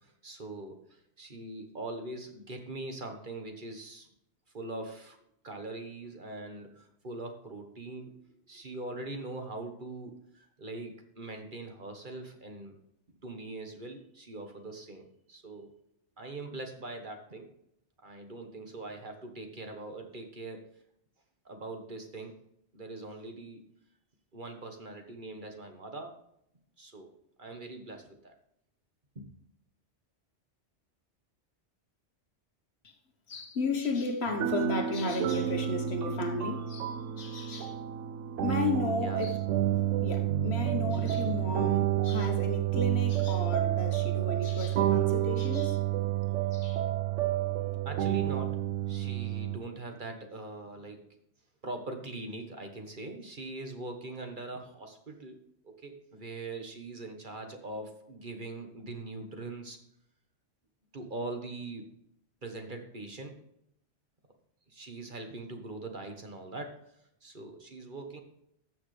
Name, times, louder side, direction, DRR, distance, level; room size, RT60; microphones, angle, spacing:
voice 1, 0.0-4.1 4.5-5.2 5.4-8.2 8.5-12.7 13.1-15.7 16.2-17.5 18.0-20.7 21.4-22.3 22.7-23.6 24.3-26.2 26.8-27.1 27.4-28.3 29.1-29.3 39.0-39.2 47.8-51.1 51.6-59.8 60.9-61.9 62.4-63.4 64.7-66.9 67.2-68.2, right 2 dB, 45° right, 1.5 m, -42 dB
voice 2, 33.3-37.8 38.4-39.4 40.0-45.8 46.5-46.8, left 3 dB, 60° left, 1.5 m, -34 dB
sound 1, 34.3-49.6, right 12 dB, 85° right, 1.0 m, -30 dB
14.5 x 6.3 x 3.3 m
omnidirectional pair, 1.2 m